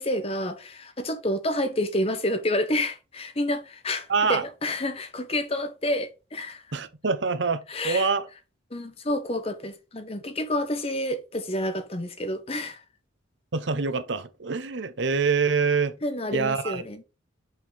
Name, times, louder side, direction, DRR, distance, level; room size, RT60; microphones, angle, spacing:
voice 1, 0.0-6.6 7.7-8.1 8.7-12.8 16.0-17.0, left 1 dB, 30° left, 1.0 m, -29 dB
voice 2, 4.1-4.4 6.7-8.3 13.5-15.9 16.3-16.8, right 5 dB, 65° right, 0.8 m, -25 dB
5.6 x 5.6 x 3.4 m
head